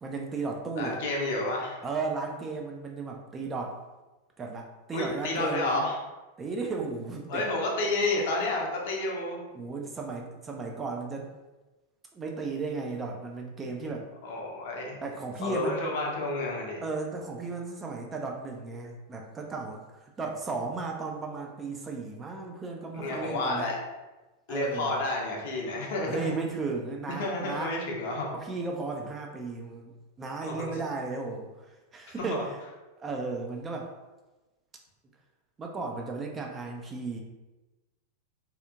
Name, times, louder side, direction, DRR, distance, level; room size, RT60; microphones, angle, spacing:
voice 1, 0.0-1.0 1.8-3.8 4.4-5.8 6.4-7.4 9.5-11.3 12.1-14.1 15.0-15.8 16.8-23.7 24.5-25.0 26.1-27.8 28.3-29.9 30.2-32.6 33.0-33.9 35.6-37.2, right 3 dB, 20° right, 1 dB, 0.4 m, -35 dB
voice 2, 0.8-1.8 4.9-6.0 7.3-9.4 14.2-15.0 15.4-16.8 22.9-23.8 24.5-26.4 27.2-28.3 30.4-30.7 32.3-32.4, left 2 dB, 55° left, -1 dB, 0.6 m, -30 dB
2.8 x 2.4 x 2.4 m, 1.1 s
figure-of-eight pair, 90°, 0 cm